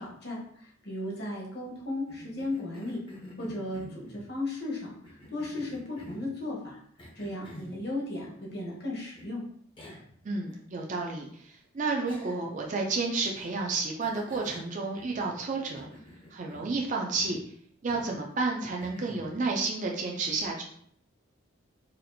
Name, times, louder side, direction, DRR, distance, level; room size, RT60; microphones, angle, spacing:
voice 1, 0.0-3.0 3.4-6.8 7.1-9.4, left 2 dB, 50° left, -3 dB, 1.0 m, -35 dB
Cough, 2.1-4.3 5.0-6.3 7.0-7.8 9.2-9.3 9.8-10.1 10.5-10.6 12.1-12.6 13.2-13.6 14.0-15.4 15.7-16.8 17.2-17.5 17.9-18.2 18.8-19.3, left 1 dB, 25° left, 0.6 m, -48 dB
voice 2, 10.2-15.9 16.3-17.4 17.8-20.6, right 3 dB, 35° right, 0 dB, 0.4 m, -31 dB
4.1 x 2.5 x 2.7 m, 0.64 s
head